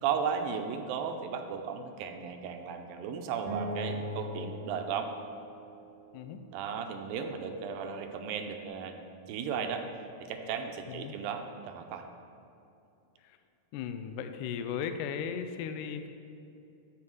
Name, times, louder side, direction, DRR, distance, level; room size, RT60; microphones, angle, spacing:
voice 1, 0.0-5.1 6.5-9.8 10.3-12.0, right 7 dB, 80° right, 5 dB, 2.3 m, -35 dB
Acoustic guitar, 3.5-6.7, equal, 60° right, 1.6 m, -40 dB
voice 2, 6.1-6.4 10.9-11.2 13.2-13.4 13.7-16.1, left 7 dB, 85° left, 8 dB, 1.9 m, -36 dB
12.5 x 4.6 x 6.3 m, 2.7 s
omnidirectional pair, 4.2 m